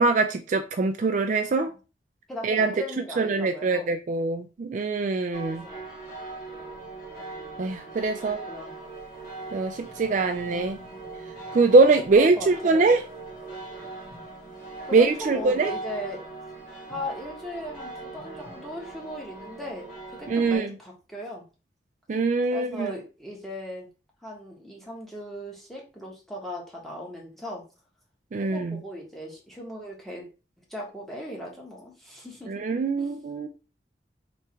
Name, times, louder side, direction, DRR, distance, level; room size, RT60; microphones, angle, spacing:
voice 1, 0.0-1.7 2.4-2.7 3.2-5.6 7.6-8.4 9.5-10.8 11.5-13.0 14.9-15.7 20.3-20.7 22.1-22.9 28.3-28.8 32.5-33.5, right 3 dB, 45° right, 0.3 m, -23 dB
voice 2, 2.3-3.9 8.2-8.7 12.2-12.9 14.9-16.2 16.9-21.4 22.5-23.9 24.2-27.6 28.4-30.3 30.7-32.7 33.0-33.1, equal, ahead, 1.2 m, -38 dB
sound 1, 5.3-20.6, right 3 dB, 55° left, 1.5 m, -40 dB
3.4 x 3.1 x 4.3 m
head